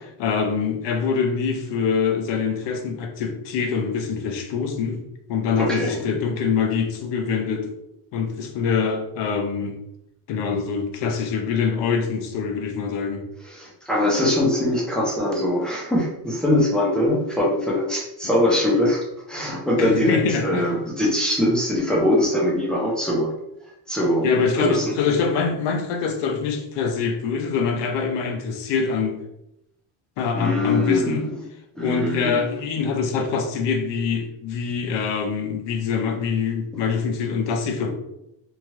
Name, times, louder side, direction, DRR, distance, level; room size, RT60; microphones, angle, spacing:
voice 1, 0.2-5.0 5.3-7.7 8.1-9.8 10.3-13.3 19.8-20.7 24.2-29.2 30.2-31.3 31.8-37.9, left 5 dB, 70° left, 5 dB, 0.7 m, -24 dB
voice 2, 5.6-6.1 13.4-23.3 23.9-24.9 30.3-31.3 31.8-32.5, left 1 dB, ahead, -3 dB, 0.4 m, -22 dB
2.9 x 2.3 x 3.0 m, 0.83 s
cardioid pair, 155°, 45 cm